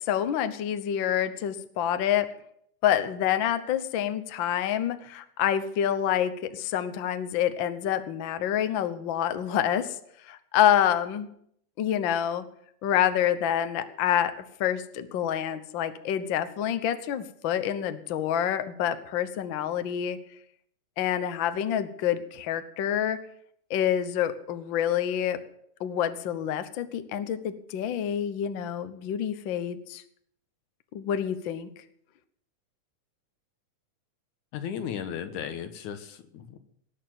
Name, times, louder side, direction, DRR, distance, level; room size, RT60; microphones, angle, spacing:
voice 1, 0.1-2.3 2.8-10.0 10.3-11.3 11.8-12.4 12.8-14.3 14.6-20.2 21.0-23.2 23.7-25.4 25.8-30.0 30.9-31.7, left 10 dB, 60° left, 10 dB, 1.2 m, -27 dB
voice 2, 34.5-36.6, left 8 dB, 85° left, 8 dB, 2.7 m, -35 dB
18.5 x 6.7 x 7.7 m, 0.68 s
omnidirectional pair, 3.4 m